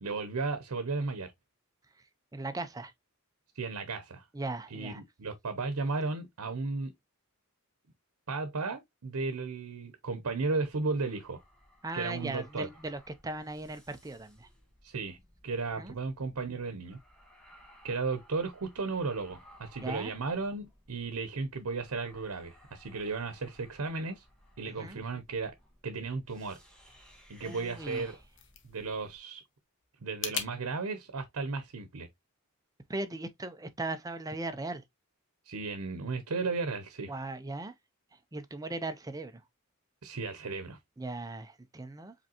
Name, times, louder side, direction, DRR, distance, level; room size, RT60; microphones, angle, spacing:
voice 1, 0.0-1.3 3.5-4.3 4.7-6.9 8.3-11.4 11.9-12.7 14.8-15.2 15.4-17.0 17.8-24.2 24.6-25.5 25.8-26.6 27.3-28.2 28.6-29.4 30.0-32.1 35.5-37.1 40.0-40.8, right 3 dB, 85° right, 0.8 m, -34 dB
voice 2, 2.3-2.9 4.3-5.0 11.8-14.5 15.8-15.9 19.8-20.1 24.7-25.0 27.4-28.1 32.9-34.8 37.1-37.7 38.1-39.4 41.0-42.1, right 2 dB, 15° right, 0.5 m, -38 dB
sound 1, 10.3-29.2, equal, 5° left, 1.4 m, -59 dB
sound 2, 27.9-30.5, left 8 dB, 60° left, 0.9 m, -41 dB
5.1 x 3.4 x 2.8 m
head